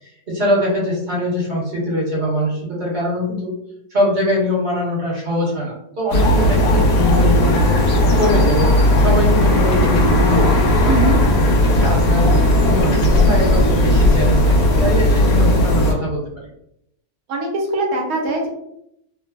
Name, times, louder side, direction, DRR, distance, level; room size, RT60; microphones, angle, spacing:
voice 1, 0.0-3.5 3.9-7.7 8.2-10.6 11.7-12.3 12.6-16.2, equal, 40° right, -5 dB, 1.0 m, -22 dB
sound 1, 6.1-15.9, left 1 dB, 90° left, 1.2 m, -15 dB
voice 2, 10.9-11.2 17.3-18.5, right 2 dB, 75° right, 0 dB, 1.1 m, -21 dB
3.5 x 2.0 x 2.2 m, 0.76 s
omnidirectional pair, 1.6 m